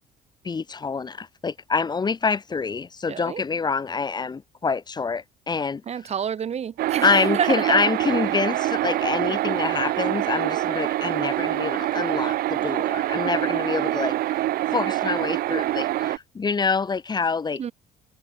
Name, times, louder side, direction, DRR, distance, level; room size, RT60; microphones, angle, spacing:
voice 1, 0.4-5.8 7.0-14.1 14.7-17.6, left 5 dB, 25° left, 1.0 m, -26 dB
voice 2, 3.1-3.4 5.9-7.1 7.3-7.8 17.6-17.7, right 8 dB, 40° right, 0.9 m, -28 dB
sound 1, 6.8-16.2, right 15 dB, 65° right, 0.6 m, -25 dB
cardioid pair, 110°, 17 cm